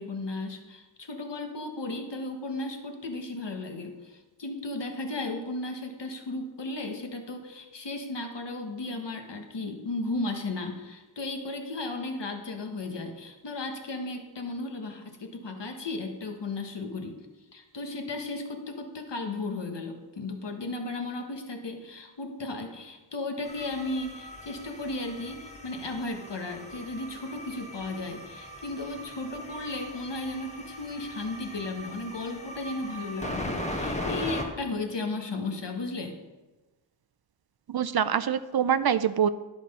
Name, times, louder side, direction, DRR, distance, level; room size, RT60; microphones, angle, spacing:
voice 1, 0.0-17.2 17.5-36.2, left 2 dB, 65° left, 4 dB, 1.4 m, -35 dB
sound 1, 23.4-34.4, left 1 dB, 15° left, 1.4 m, -39 dB
voice 2, 37.7-39.3, right 8 dB, 55° right, 13 dB, 0.5 m, -25 dB
11.0 x 5.9 x 5.4 m, 1.1 s
wide cardioid pair, 70°, 45 cm